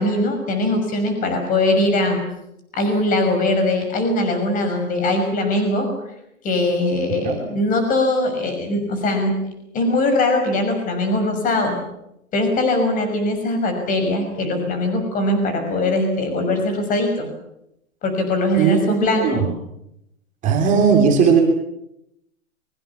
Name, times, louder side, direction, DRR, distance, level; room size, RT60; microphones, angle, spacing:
voice 1, 0.0-2.2 2.7-5.9 6.4-9.3 9.7-11.8 12.3-17.3 18.0-19.5, left 1 dB, 20° left, 6 dB, 6.0 m, -21 dB
voice 2, 20.4-21.4, right 6 dB, 20° right, 1 dB, 3.5 m, -16 dB
24.0 x 23.0 x 7.2 m, 0.81 s
hypercardioid pair, 150°, 42 cm